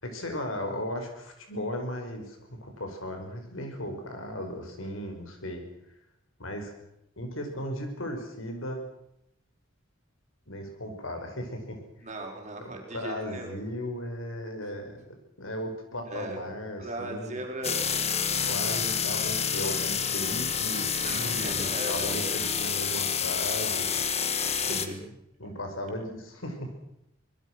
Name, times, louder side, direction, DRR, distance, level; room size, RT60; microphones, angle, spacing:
voice 1, 0.0-5.6 6.4-6.7 7.2-8.8 10.5-12.1 12.9-15.0 15.4-17.4 18.4-23.9 24.7-25.1 25.4-26.7, left 1 dB, 90° left, 4 dB, 5.7 m, -36 dB
voice 2, 12.0-13.5 16.1-16.4 16.8-18.0 18.3-18.4 20.4-20.5 21.0-22.2 24.5-25.0, right 2 dB, 35° right, 1 dB, 5.4 m, -38 dB
sound 1, 17.6-24.9, left 7 dB, 30° left, 1.6 m, -28 dB
25.0 x 21.0 x 6.3 m, 0.80 s
head